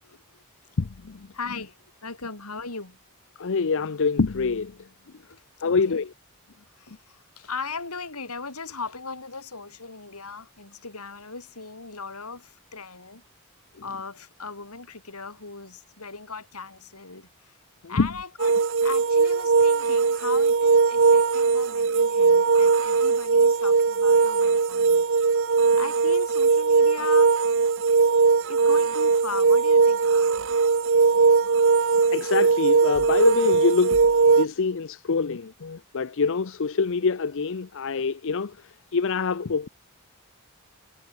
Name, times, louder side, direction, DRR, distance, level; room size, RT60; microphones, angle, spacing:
voice 1, 0.0-0.4 1.3-1.7 2.0-3.0 5.3-6.0 6.7-13.2 13.8-17.6 17.9-25.1 25.8-27.4 28.5-30.5 31.5-31.6, left 4 dB, 85° left, 5.9 m, -38 dB
voice 2, 0.8-1.3 3.4-4.9 5.6-6.1 17.8-18.1 32.1-34.0 34.3-39.7, left 4 dB, 60° left, 0.6 m, -25 dB
sound 1, 18.4-34.5, right 4 dB, 60° right, 0.7 m, -20 dB
head